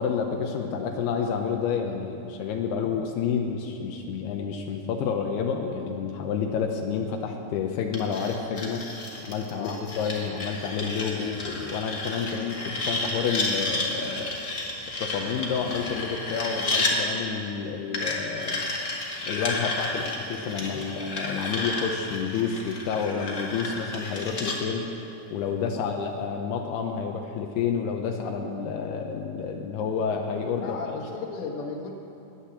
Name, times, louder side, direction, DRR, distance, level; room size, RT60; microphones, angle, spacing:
voice 1, 0.0-8.8 9.2-14.3 15.0-18.7 19.3-24.9 25.3-30.8, left 6 dB, 80° left, 2 dB, 2.9 m, -29 dB
sound 1, 7.9-16.9 17.9-24.6, left 2 dB, 45° left, 1.0 m, -32 dB
voice 2, 9.5-9.8 21.4-21.7 25.7-25.9 30.6-31.9, left 4 dB, 60° left, 1 dB, 2.9 m, -35 dB
18.5 x 10.0 x 7.4 m, 3.0 s
omnidirectional pair, 4.6 m